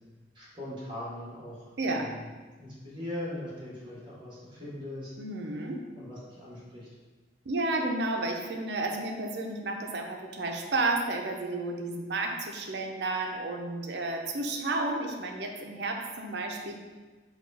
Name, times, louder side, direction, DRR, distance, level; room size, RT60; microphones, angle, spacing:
voice 1, 0.3-2.3 2.6-5.1 5.9-6.9, left 1 dB, 25° right, -7 dB, 1.3 m, -40 dB
voice 2, 1.8-2.1 5.2-5.8 7.5-16.8, right 2 dB, 65° right, 2 dB, 0.6 m, -32 dB
4.9 x 2.3 x 4.7 m, 1.3 s
head